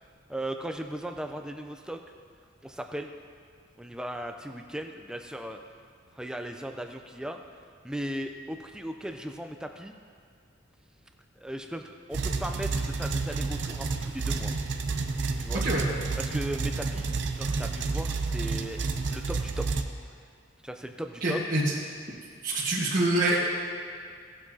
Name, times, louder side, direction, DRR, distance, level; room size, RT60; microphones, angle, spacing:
voice 1, 0.3-2.0 2.6-3.1 3.8-5.6 6.1-7.4 7.8-9.9 11.4-14.5 15.4-15.6 16.2-17.1 17.3-18.8 19.1-19.7 20.6-21.4, right 1 dB, 5° right, 5 dB, 0.5 m, -37 dB
sound 1, 12.1-19.8, right 3 dB, 60° right, 0.6 m, -30 dB
voice 2, 21.2-21.7 22.4-23.4, right 1 dB, 45° right, -8 dB, 1.5 m, -26 dB
17.5 x 7.5 x 2.8 m, 2.2 s
head